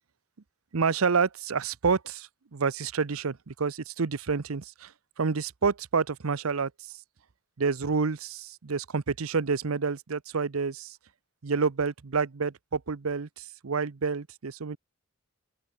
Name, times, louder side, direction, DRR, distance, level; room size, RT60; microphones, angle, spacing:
voice 1, 0.7-7.0 7.6-11.0 11.4-14.8, right 5 dB, 90° right, 0.7 m, -29 dB
open air
head